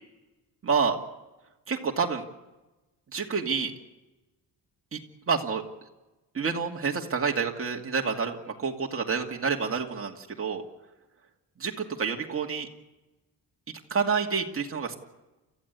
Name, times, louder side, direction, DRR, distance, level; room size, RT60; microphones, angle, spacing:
voice 1, 0.6-1.0 1.7-2.2 3.1-3.7 5.3-5.6 6.3-10.6 11.6-12.7 13.9-15.0, right 5 dB, 30° right, 1 dB, 2.5 m, -28 dB
30.0 x 14.5 x 8.4 m, 1.1 s
wide cardioid pair, 155°, 42 cm